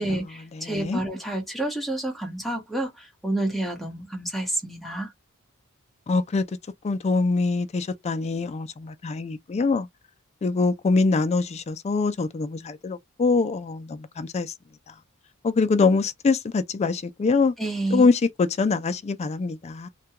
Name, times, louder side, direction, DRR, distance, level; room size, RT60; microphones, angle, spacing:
voice 1, 0.0-5.1 17.6-18.1, right 1 dB, ahead, 0.9 m, -29 dB
voice 2, 0.7-1.0 6.1-6.4 6.8-9.9 10.4-14.5 15.4-17.5 17.9-19.9, left 4 dB, 30° left, 0.3 m, -24 dB
2.3 x 2.2 x 2.8 m
head